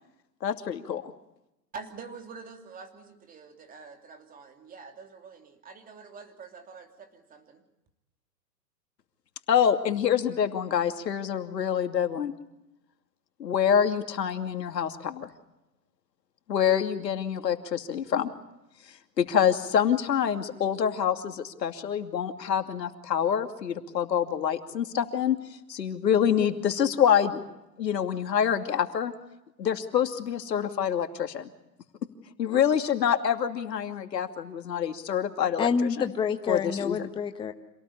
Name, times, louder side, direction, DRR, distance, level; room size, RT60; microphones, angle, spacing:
voice 1, 0.4-1.1 9.5-12.3 13.4-15.3 16.5-18.3 19.2-25.4 25.7-27.4 27.8-29.1 29.6-31.5 32.4-35.9 36.5-37.1, left 8 dB, 75° left, 2.7 m, -26 dB
voice 2, 1.7-7.6, right 5 dB, 15° right, 2.9 m, -46 dB
voice 3, 35.6-37.5, left 6 dB, 10° left, 1.0 m, -28 dB
27.0 x 18.5 x 8.5 m
hypercardioid pair, 130°, 50 cm